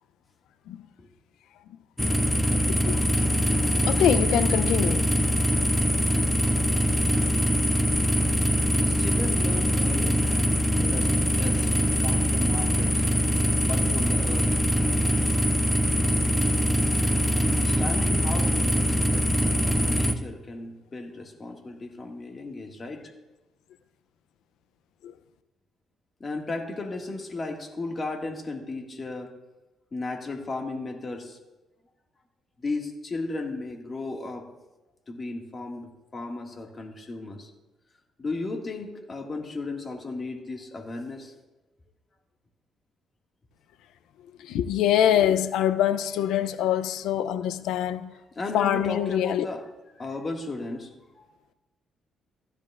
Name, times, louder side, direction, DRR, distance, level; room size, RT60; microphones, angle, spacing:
sound 1, 2.0-20.1, equal, 10° left, 0.7 m, -23 dB
voice 1, 2.5-3.2 3.8-5.0 10.8-10.9 25.0-25.1 44.4-48.1 48.5-49.5, left 10 dB, 85° left, 0.5 m, -25 dB
voice 2, 8.7-10.4 10.7-11.7 12.0-13.0 13.6-14.5 17.5-23.1 26.2-29.3 29.9-31.4 32.6-34.5 35.1-37.5 38.2-41.3 48.4-49.6 49.9-51.2, left 3 dB, 35° left, 1.9 m, -35 dB
15.5 x 11.5 x 2.4 m
cardioid pair, 90°, 0 cm